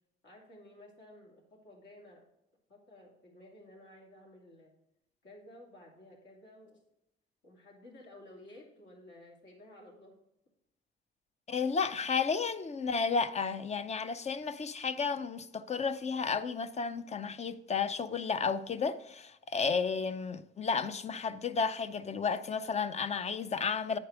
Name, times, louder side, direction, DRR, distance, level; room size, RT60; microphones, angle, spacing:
voice 1, 0.2-2.2 2.7-4.7 5.2-6.8 7.4-10.1, left 1 dB, 65° left, 2.6 m, -54 dB
voice 2, 11.5-24.0, left 5 dB, 35° left, 0.5 m, -32 dB
9.7 x 4.6 x 4.8 m
cardioid pair, 90°, 20 cm